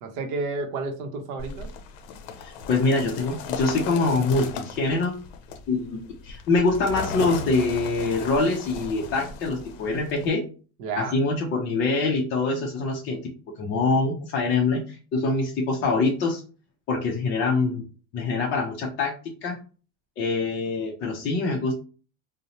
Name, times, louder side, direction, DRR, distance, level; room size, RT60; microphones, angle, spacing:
voice 1, 0.0-1.7 10.8-11.2, right 3 dB, 50° right, 5 dB, 0.7 m, -31 dB
sound 1, 1.4-10.3, left 5 dB, 75° left, 0.6 m, -37 dB
voice 2, 2.4-5.2 5.7-10.4 10.9-13.2 13.6-16.4 16.9-17.8 18.1-19.6 20.2-21.7, left 3 dB, 30° left, -2 dB, 0.4 m, -24 dB
2.6 x 2.0 x 2.9 m, 0.36 s
cardioid pair, 150°, 39 cm